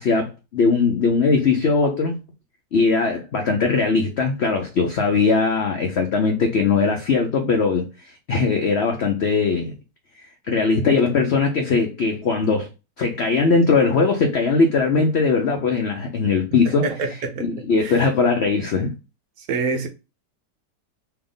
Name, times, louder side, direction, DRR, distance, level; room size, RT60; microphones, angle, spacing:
voice 1, 0.0-2.1 2.7-7.9 8.3-9.7 10.5-12.7 13.0-16.9 17.4-18.9, left 4 dB, 80° left, 0.5 m, -20 dB
voice 2, 16.6-18.0 19.4-19.9, right 4 dB, 70° right, 1.0 m, -27 dB
3.4 x 2.8 x 3.8 m
omnidirectional pair, 1.9 m